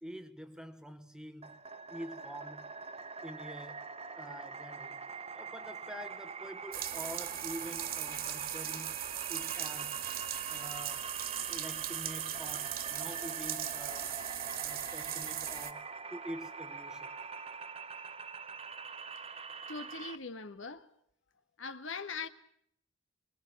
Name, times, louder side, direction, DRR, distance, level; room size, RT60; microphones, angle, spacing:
voice 1, 0.0-1.6 1.9-2.8 3.2-5.1 5.3-9.0 9.3-10.1 10.5-11.1 11.5-14.2 14.6-17.2, equal, 5° right, 1.4 m, -46 dB
sound 1, 1.4-20.2, right 5 dB, 30° right, 1.0 m, -44 dB
sound 2, 6.7-15.7, right 10 dB, 50° right, 2.2 m, -38 dB
voice 2, 19.7-20.9 21.6-22.3, left 4 dB, 70° left, 1.7 m, -41 dB
27.0 x 20.5 x 9.0 m
head